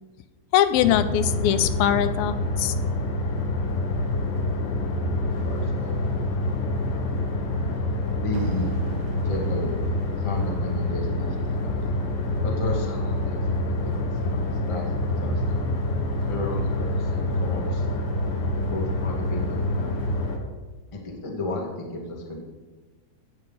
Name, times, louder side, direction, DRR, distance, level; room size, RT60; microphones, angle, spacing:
voice 1, 0.5-2.7, left 11 dB, 80° left, 12 dB, 2.3 m, -22 dB
sound 1, 0.8-20.4, left 2 dB, 65° left, 2.9 m, -26 dB
voice 2, 5.1-6.3 8.2-8.7 9.2-9.7 10.2-11.9 12.4-13.4 13.7-14.4 14.7-15.6 16.3-17.9 18.5-19.9 20.9-22.4, left 2 dB, 30° left, -1 dB, 0.5 m, -34 dB
sound 2, 5.3-11.6, right 6 dB, 90° right, 2.7 m, -40 dB
16.0 x 6.3 x 5.6 m, 1.3 s
omnidirectional pair, 4.3 m